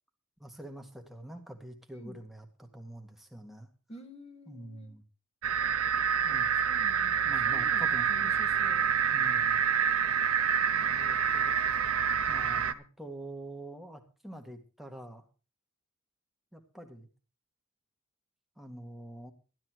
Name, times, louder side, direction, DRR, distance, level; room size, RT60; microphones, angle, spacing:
voice 1, 0.4-3.7 4.5-5.0 6.2-6.6 7.2-8.4 9.1-9.6 10.7-11.5 12.3-15.2 16.5-17.1 18.6-19.3, right 1 dB, ahead, 3 dB, 1.8 m, -46 dB
voice 2, 3.9-4.9 6.6-8.9, equal, 30° left, 8 dB, 1.6 m, -49 dB
sound 1, 5.4-12.7, right 7 dB, 75° right, 0.8 m, -27 dB
12.5 x 12.0 x 4.7 m, 0.35 s
head